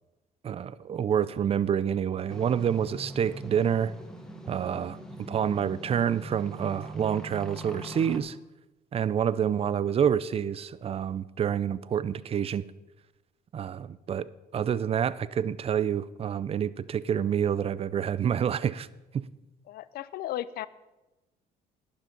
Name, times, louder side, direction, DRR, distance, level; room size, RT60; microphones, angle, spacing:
voice 1, 0.4-3.9 4.5-5.0 5.3-8.4 8.9-12.6 13.5-18.9 19.1-19.2, right 8 dB, 35° right, 18 dB, 0.5 m, -28 dB
sound 1, 2.3-8.2, right 1 dB, 5° left, 1.4 m, -42 dB
voice 2, 19.7-20.7, left 13 dB, 65° left, 17 dB, 0.6 m, -35 dB
11.5 x 10.0 x 5.3 m, 1.0 s
cardioid pair, 110°, 17 cm